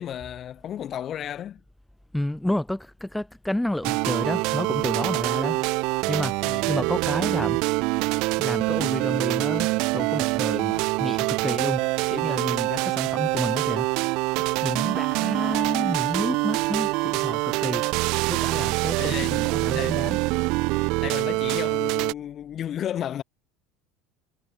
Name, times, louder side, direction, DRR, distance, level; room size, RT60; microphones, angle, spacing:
voice 1, 0.0-1.6 5.3-5.7 6.4-6.7 19.0-19.4 19.7-20.1 21.0-23.2, left 10 dB, 40° left, 3.0 m, -33 dB
voice 2, 2.1-5.6 6.1-6.4 6.7-7.6 8.4-9.7 9.9-13.9 14.6-17.8 18.3-20.2, left 1 dB, 5° left, 1.8 m, -30 dB
sound 1, 3.8-22.1, right 25 dB, 55° right, 4.0 m, -25 dB
figure-of-eight pair, 65°, 0 cm